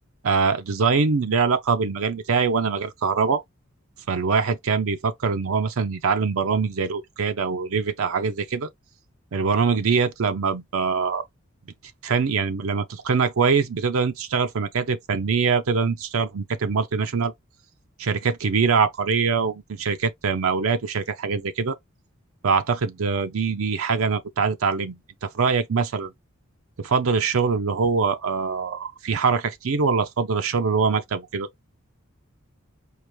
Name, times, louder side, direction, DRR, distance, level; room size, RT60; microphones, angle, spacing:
voice 1, 0.2-3.4 4.1-8.7 9.3-11.2 12.0-17.3 18.0-21.8 22.4-26.1 26.8-31.5, right 5 dB, 75° right, 0.6 m, -23 dB
4.8 x 2.4 x 3.0 m
head